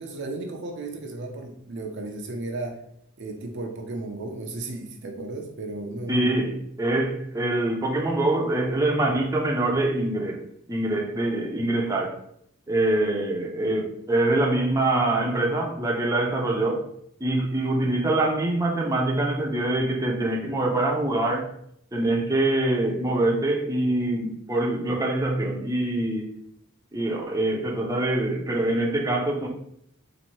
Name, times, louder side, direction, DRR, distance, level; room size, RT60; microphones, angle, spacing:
voice 1, 0.0-2.8 3.2-6.4, right 2 dB, 60° right, 2 dB, 0.6 m, -34 dB
voice 2, 6.1-12.2 12.7-16.8 17.2-21.5 21.9-26.3 26.9-29.5, right 2 dB, 15° right, -2 dB, 0.6 m, -24 dB
4.1 x 2.6 x 3.0 m, 0.70 s
head